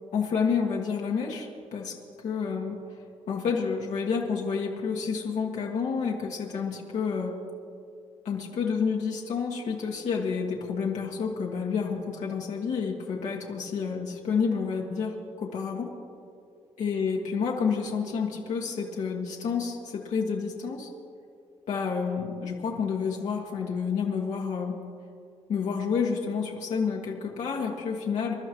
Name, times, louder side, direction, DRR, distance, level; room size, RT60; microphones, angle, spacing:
voice 1, 0.1-1.9 2.2-2.8 3.3-7.4 8.2-15.9 16.8-20.9 21.7-24.7 25.5-28.3, left 6 dB, 85° left, -2 dB, 1.6 m, -29 dB
27.5 x 12.5 x 3.1 m, 2.5 s
wide cardioid pair, 150°, 12 cm